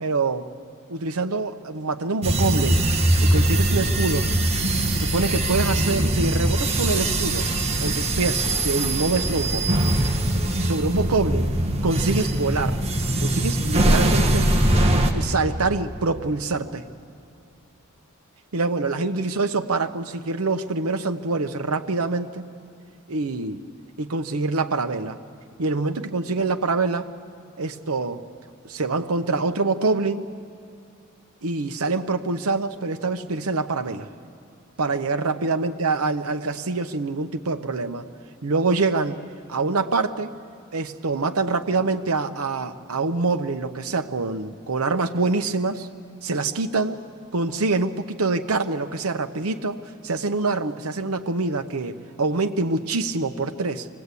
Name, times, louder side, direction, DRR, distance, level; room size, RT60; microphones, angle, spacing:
voice 1, 0.0-0.5 0.9-2.8 3.2-4.3 4.9-7.5 7.8-9.7 10.6-11.5 11.8-12.8 13.2-14.5 15.1-16.8 18.5-22.4 23.1-23.6 24.0-25.2 25.6-27.1 27.6-28.2 28.6-30.3 31.4-34.1 34.8-38.1 38.4-39.2 39.5-40.3 40.7-45.9 46.2-47.0 47.3-53.9, right 3 dB, 85° right, 7 dB, 0.9 m, -25 dB
sound 1, 2.2-15.1, right 1 dB, 30° right, 1.5 m, -22 dB
25.0 x 19.0 x 8.3 m, 2.4 s
head